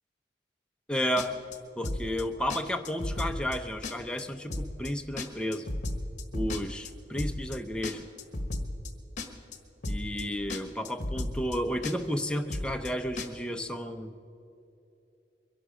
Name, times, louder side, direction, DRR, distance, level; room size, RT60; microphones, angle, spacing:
voice 1, 0.9-1.4 1.8-5.7 6.3-8.1 9.9-14.1, equal, 5° left, 5 dB, 0.7 m, -32 dB
sound 1, 1.2-1.6 1.8-2.2 2.5-2.6 2.8-3.6 3.8-4.2 4.5-4.9 5.2-6.9 7.2-7.6 7.8-8.9 9.2-9.6 9.8-10.2 10.5-10.6 10.8-11.6 11.8-12.2 12.5-12.9 13.2-13.3, left 1 dB, 45° left, 1.3 m, -33 dB
23.0 x 11.5 x 5.0 m, 2.7 s
head